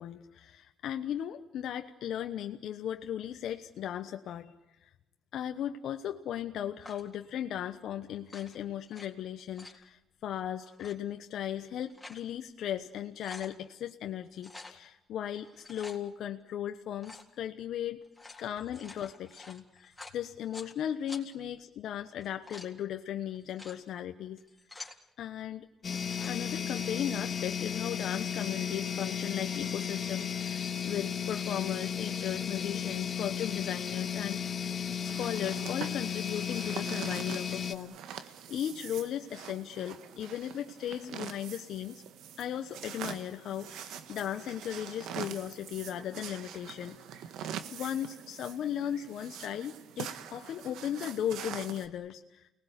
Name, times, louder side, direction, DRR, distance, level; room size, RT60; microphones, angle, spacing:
voice 1, 0.0-4.5 4.8-4.9 5.3-18.0 18.4-24.4 25.2-25.7 26.3-34.7 35.0-42.0 42.4-47.0 47.7-52.5, left 10 dB, 75° left, 6 dB, 1.1 m, -37 dB
sound 1, 6.8-7.2 8.2-9.1 9.4-9.8 10.7-11.0 11.6-12.3 12.7-12.8 13.0-13.5 14.4-14.8 15.4-16.0 17.0-17.3 18.0-20.7 21.1-21.2 22.1-22.7 23.3-23.8 24.4-25.0 25.9-26.3, left 2 dB, 10° left, 3.7 m, -49 dB
sound 2, 25.8-37.7, left 8 dB, 45° left, 1.7 m, -34 dB
sound 3, 35.0-51.9, right 9 dB, 85° right, 1.4 m, -44 dB
29.0 x 20.0 x 8.2 m, 0.94 s
cardioid pair, 90°, 0 cm